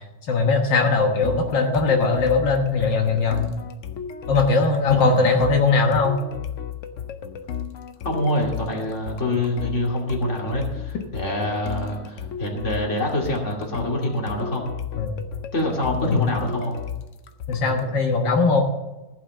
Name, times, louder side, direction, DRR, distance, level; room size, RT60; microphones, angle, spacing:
voice 1, 0.3-3.5 4.3-6.2 15.0-15.2 16.0-16.3 17.5-18.6, left 4 dB, 85° left, 2 dB, 2.0 m, -20 dB
sound 1, 1.2-17.9, left 8 dB, 55° left, 0.9 m, -34 dB
voice 2, 8.0-14.7 15.5-16.8, left 1 dB, 40° left, -1 dB, 2.7 m, -25 dB
15.0 x 5.9 x 7.5 m, 1.1 s
omnidirectional pair, 1.9 m